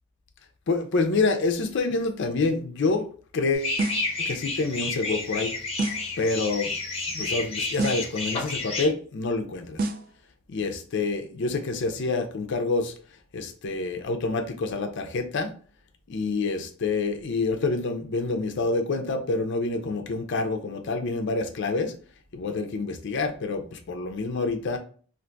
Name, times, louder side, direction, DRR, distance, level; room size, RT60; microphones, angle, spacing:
voice 1, 0.7-3.1 3.3-3.8 4.2-5.5 6.2-6.7 7.1-9.9 10.5-12.9 13.3-15.5 16.1-21.9 22.3-24.8, left 3 dB, 55° left, 0.4 m, -27 dB
sound 1, 3.5-8.9, left 3 dB, 25° left, 0.8 m, -31 dB
sound 2, 3.8-4.2 5.8-6.2 7.8-8.2 9.8-10.2, right 2 dB, 40° right, 0.3 m, -29 dB
2.5 x 2.3 x 3.8 m
head